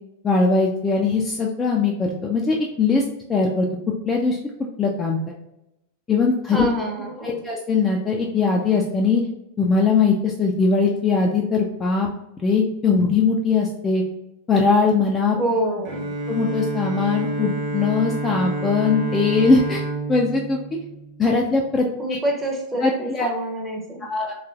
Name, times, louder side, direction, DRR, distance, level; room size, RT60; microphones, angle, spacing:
voice 1, 0.2-3.0 3.3-3.7 4.1-4.4 4.8-5.2 6.1-6.7 7.2-9.2 9.6-12.1 12.4-14.0 14.5-15.4 16.3-19.8 20.1-20.6 21.2-21.9 22.8-23.3 24.0-24.3, left 4 dB, 20° left, -1 dB, 0.3 m, -20 dB
voice 2, 6.5-7.4 15.4-16.1 22.0-24.1, right 1 dB, 10° right, -1 dB, 0.7 m, -26 dB
Bowed string instrument, 15.8-21.7, right 2 dB, 40° right, 0.9 m, -29 dB
3.0 x 2.4 x 2.4 m, 0.90 s
figure-of-eight pair, 90°, 0 cm